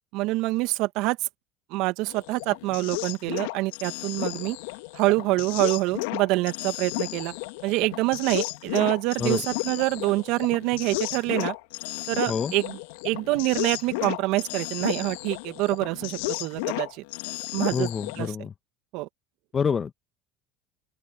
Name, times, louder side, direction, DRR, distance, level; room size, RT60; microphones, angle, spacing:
voice 1, 0.1-1.3 1.7-4.6 4.9-7.3 7.6-11.5 12.1-12.8 13.0-17.0 17.5-17.9 18.2-18.3 18.9-19.1, right 20 dB, 65° right, 2.3 m, -26 dB
sound 1, 2.1-18.3, left 24 dB, 75° left, 2.5 m, -33 dB
voice 2, 17.7-18.5 19.5-19.9, left 6 dB, 35° left, 1.5 m, -27 dB
open air
hypercardioid pair, 75°, 0 cm